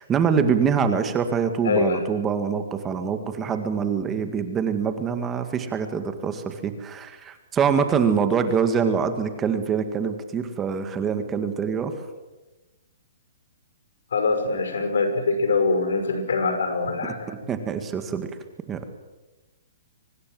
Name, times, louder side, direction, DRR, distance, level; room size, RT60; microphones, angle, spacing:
voice 1, 0.0-12.0 17.3-18.3 18.7-18.9, right 6 dB, 15° right, 8 dB, 1.9 m, -24 dB
voice 2, 1.6-2.0 14.1-17.3, left 3 dB, 85° left, 7 dB, 5.5 m, -23 dB
24.5 x 19.5 x 7.8 m, 1.1 s
hypercardioid pair, 160°, 0 cm